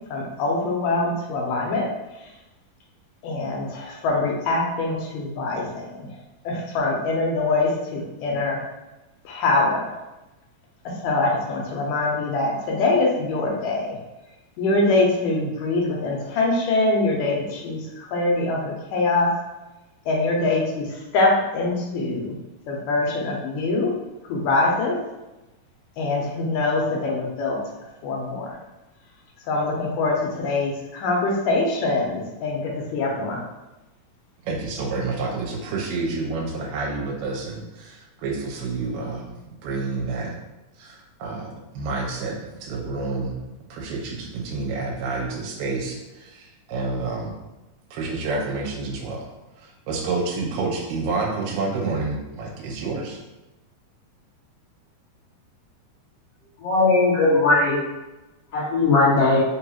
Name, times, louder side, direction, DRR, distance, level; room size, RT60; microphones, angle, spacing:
voice 1, 0.1-1.9 3.2-6.1 6.5-8.6 9.3-9.9 11.0-14.0 14.6-19.3 20.1-22.4 22.7-23.9 24.2-25.0 26.0-27.6 28.0-28.6 29.5-33.4, left 2 dB, 85° left, -1 dB, 2.3 m, -23 dB
voice 2, 34.4-40.3 40.8-43.4 43.7-47.3 47.9-49.2 49.6-53.2, right 3 dB, 85° right, 0 dB, 2.3 m, -29 dB
voice 3, 56.6-57.8 58.5-59.4, left 3 dB, 60° left, -10 dB, 1.8 m, -18 dB
5.3 x 2.3 x 2.9 m, 1.0 s
omnidirectional pair, 3.8 m